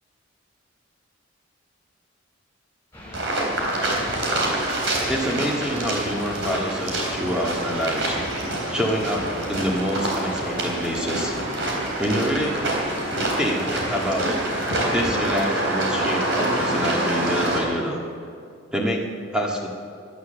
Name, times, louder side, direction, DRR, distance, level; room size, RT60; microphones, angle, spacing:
sound 1, 2.9-14.1, left 1 dB, 10° left, 5.4 m, -39 dB
sound 2, 3.1-17.6, right 1 dB, 65° right, 3.8 m, -26 dB
voice 1, 5.1-8.2 8.7-11.4 12.0-12.5 13.4-14.4 14.9-18.0 18.7-19.7, equal, 5° right, -2 dB, 1.9 m, -26 dB
17.5 x 11.5 x 6.9 m, 2.3 s
head